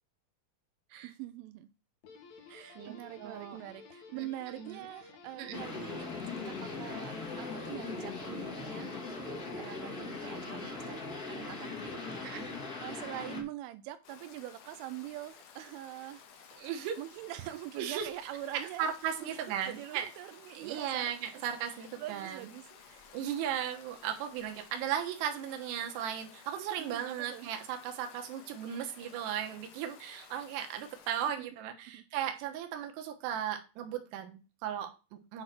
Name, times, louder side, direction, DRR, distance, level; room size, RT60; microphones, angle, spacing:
voice 1, 1.0-1.7 2.5-6.1 6.4-11.0 11.3-12.4 12.8-16.5 17.0-18.9 19.2-19.3 19.7-21.4 22.0-23.2 26.8-27.5 31.4-31.5 31.9-32.1, right 14 dB, 90° right, 10 dB, 3.1 m, -44 dB
Guitar, 2.0-11.4, left 4 dB, 90° left, 4.1 m, -54 dB
voice 2, 2.8-3.6 4.1-4.8 5.4-5.6 12.2-12.5 16.6-17.0 17.8-18.1 18.5-20.1 20.5-22.5 23.1-35.4, right 9 dB, 70° right, 4 dB, 3.2 m, -36 dB
sound 1, 5.5-13.4, left 3 dB, 40° left, 1.3 m, -40 dB
Stream, 14.0-31.3, left 7 dB, 70° left, 2.0 m, -55 dB
9.2 x 3.8 x 6.0 m, 0.31 s
omnidirectional pair, 5.4 m